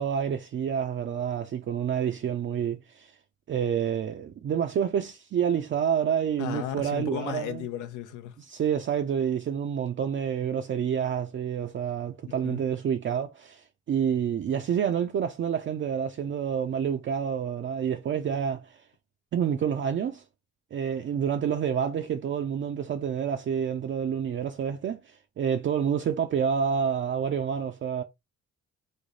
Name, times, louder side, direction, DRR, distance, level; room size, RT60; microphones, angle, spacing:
voice 1, 0.0-3.1 3.5-7.7 8.4-18.8 19.3-20.2 20.7-28.0, right 8 dB, 40° right, 0.4 m, -28 dB
voice 2, 6.4-8.3 12.2-12.6, left 11 dB, 90° left, 0.7 m, -35 dB
3.2 x 2.1 x 3.8 m
cardioid pair, 90°, 30 cm